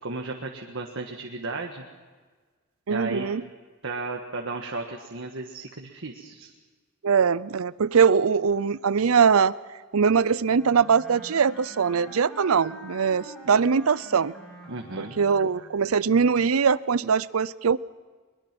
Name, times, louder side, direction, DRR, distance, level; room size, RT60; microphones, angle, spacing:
voice 1, 0.0-1.8 2.9-3.3 3.8-6.5 14.7-15.2, right 3 dB, 65° right, 2 dB, 1.5 m, -34 dB
voice 2, 2.9-3.4 7.0-9.5 9.9-14.3 15.0-17.8, right 6 dB, 85° right, 19 dB, 0.6 m, -22 dB
Wind instrument woodwind instrument, 10.5-15.8, right 1 dB, 5° left, 6.7 m, -45 dB
22.5 x 21.5 x 6.0 m, 1.4 s
head